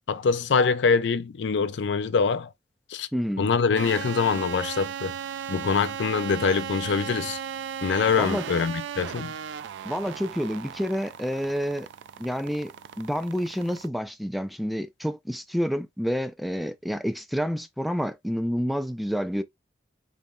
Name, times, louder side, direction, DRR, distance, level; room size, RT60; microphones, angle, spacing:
voice 1, 0.0-2.5 2.9-3.1 3.4-5.2 5.5-7.4 7.8-9.3, left 5 dB, 80° left, 0.4 m, -24 dB
voice 2, 3.1-3.5 8.2-8.4 9.8-11.9 12.2-12.7 13.0-19.4, equal, ahead, 0.3 m, -28 dB
sound 1, 3.8-13.9, right 8 dB, 90° right, 0.3 m, -36 dB
4.1 x 2.0 x 3.6 m
head